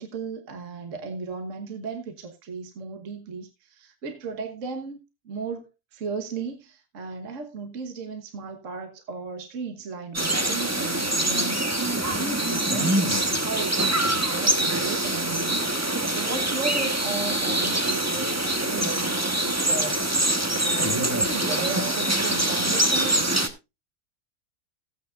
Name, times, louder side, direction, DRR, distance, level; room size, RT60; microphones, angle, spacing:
voice 1, 0.0-15.7 16.1-20.1 20.6-23.5, right 4 dB, 50° right, 1.6 m, -35 dB
sound 1, 10.1-23.5, right 1 dB, 10° right, 0.9 m, -24 dB
15.5 x 9.2 x 2.4 m
omnidirectional pair, 1.8 m